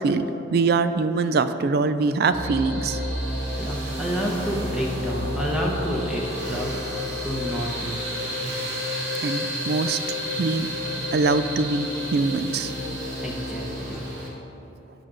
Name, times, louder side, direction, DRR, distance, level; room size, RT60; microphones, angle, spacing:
voice 1, 0.0-3.0 9.2-10.0 10.4-10.7 11.1-12.7, right 4 dB, 55° right, 11 dB, 0.3 m, -23 dB
sound 1, 2.3-14.3, equal, 85° right, 2.0 m, -30 dB
voice 2, 3.6-8.0 13.2-14.0, equal, 5° right, -3 dB, 0.9 m, -29 dB
8.4 x 5.0 x 7.5 m, 3.0 s
head